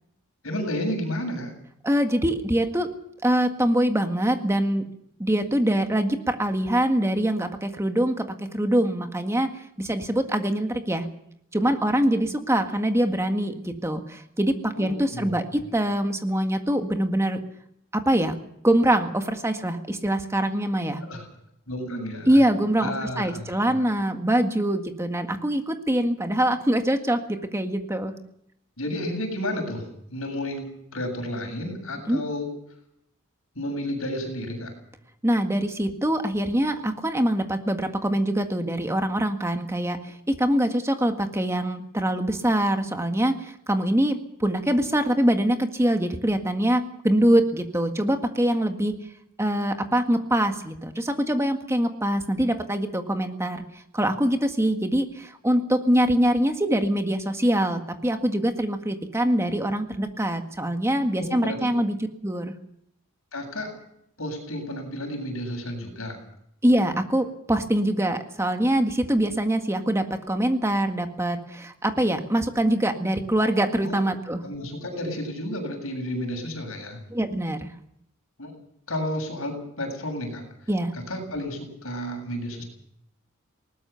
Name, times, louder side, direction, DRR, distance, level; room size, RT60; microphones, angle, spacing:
voice 1, 0.4-1.5 14.8-15.4 21.0-21.2 21.7-22.4 22.8-23.6 28.8-32.5 33.5-34.7 61.2-61.7 63.3-63.7 64.2-66.2 73.8-74.0 74.4-77.0 78.4-78.5 78.9-82.6, left 1 dB, 75° left, 3 dB, 7.6 m, -32 dB
voice 2, 1.8-2.9 3.2-4.9 5.2-9.5 9.8-11.1 11.5-17.4 17.9-18.4 18.6-21.0 22.3-28.1 32.1-32.2 35.2-48.9 49.4-53.6 53.9-62.0 62.2-62.5 66.6-74.4 77.1-77.7 80.7-80.9, right 1 dB, 15° right, 6 dB, 1.7 m, -24 dB
20.5 x 19.0 x 7.0 m, 0.73 s
head